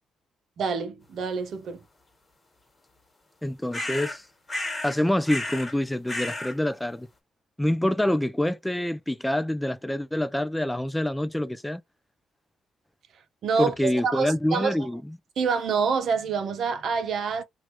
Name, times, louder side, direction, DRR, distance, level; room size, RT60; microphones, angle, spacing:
voice 1, 0.6-1.8 13.4-14.9 15.4-17.4, right 5 dB, 65° right, 0.8 m, -27 dB
voice 2, 3.4-4.2 4.8-7.1 7.6-11.8 13.6-15.0, left 1 dB, 5° left, 0.4 m, -26 dB
sound 1, 3.7-4.2 4.5-5.0 5.3-5.7 6.1-6.5, left 1 dB, 25° left, 1.5 m, -32 dB
3.1 x 2.5 x 3.0 m
cardioid pair, 90°, 0 cm